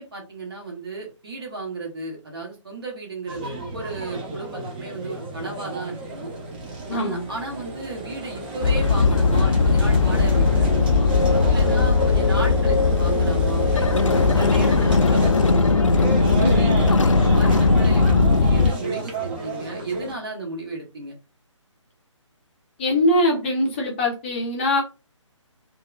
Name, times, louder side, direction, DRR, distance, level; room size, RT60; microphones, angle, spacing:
voice 1, 0.0-6.3 6.9-11.1 11.5-16.1 16.5-21.2, right 3 dB, 50° right, -1 dB, 1.4 m, -34 dB
sound 1, 3.3-20.1, right 2 dB, 20° right, 0.6 m, -32 dB
voice 2, 6.9-7.3 16.4-16.6 22.8-24.8, left 1 dB, 20° left, -1 dB, 0.6 m, -22 dB
sound 2, 8.6-18.7, left 4 dB, 80° left, 0.4 m, -18 dB
3.5 x 2.3 x 2.2 m, 0.30 s
figure-of-eight pair, 145°, 16 cm